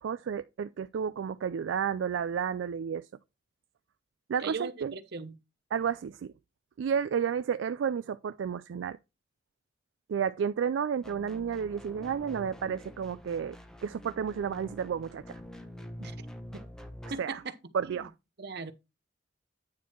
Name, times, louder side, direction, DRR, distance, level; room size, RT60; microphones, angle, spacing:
voice 1, 0.0-3.1 4.3-4.9 5.7-6.3 6.8-9.0 10.1-13.6 13.8-15.4 17.2-17.4 17.7-18.1, right 7 dB, 85° right, 0.3 m, -31 dB
voice 2, 4.4-5.4 16.0-16.2 16.5-16.6 17.1-17.5 17.8-18.1 18.4-18.7, right 4 dB, 60° right, 0.9 m, -39 dB
sound 1, 11.0-17.1, equal, 5° left, 0.8 m, -46 dB
9.5 x 4.5 x 4.4 m
head